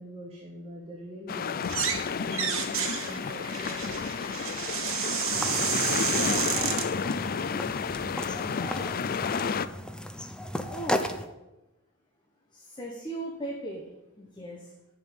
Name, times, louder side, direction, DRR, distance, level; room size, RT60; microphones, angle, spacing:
voice 1, 0.0-4.0, left 1 dB, 30° right, -3 dB, 1.9 m, -43 dB
sound 1, 1.3-9.7, left 6 dB, 45° left, 0.4 m, -31 dB
sound 2, 1.6-2.0 2.3-6.9, right 8 dB, 65° right, 1.4 m, -30 dB
sound 3, 5.3-11.2, left 1 dB, 5° left, 0.7 m, -35 dB
voice 2, 10.7-11.1 12.5-13.8 14.2-14.6, right 1 dB, 20° left, 0 dB, 1.4 m, -37 dB
10.5 x 5.6 x 8.3 m, 0.98 s
head